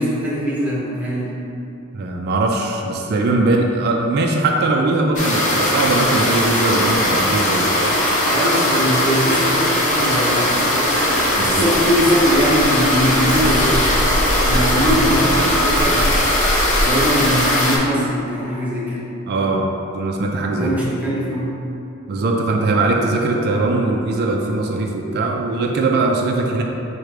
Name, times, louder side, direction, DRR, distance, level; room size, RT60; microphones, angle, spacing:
voice 1, 0.0-1.3 8.3-11.0 11.4-13.9 14.4-16.1 16.8-19.0 20.6-21.5, equal, 5° right, -7 dB, 0.9 m, -21 dB
voice 2, 1.9-7.7 11.4-11.7 19.3-19.7 19.9-20.7 22.1-26.6, right 2 dB, 50° right, 1 dB, 0.4 m, -20 dB
sound 1, 5.2-17.8, left 1 dB, 35° left, 0.7 m, -18 dB
4.8 x 2.2 x 4.7 m, 2.9 s
head